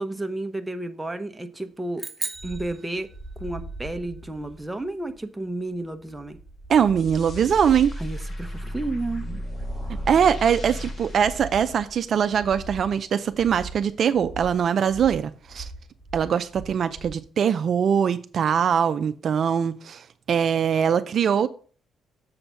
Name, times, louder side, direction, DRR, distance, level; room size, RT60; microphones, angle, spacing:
voice 1, 0.0-2.0 2.4-3.1 3.4-6.4 8.0-9.3, right 2 dB, 10° right, 0.7 m, -32 dB
sound 1, 2.0-3.6, right 4 dB, 30° right, 0.9 m, -36 dB
sound 2, 2.4-17.3, right 2 dB, 15° left, 1.2 m, -41 dB
voice 2, 6.7-7.9 10.1-15.7 16.1-21.5, right 7 dB, 55° right, 0.4 m, -22 dB
sound 3, 7.0-12.3, equal, 40° left, 1.3 m, -35 dB
7.1 x 3.9 x 5.6 m
cardioid pair, 90°, 0 cm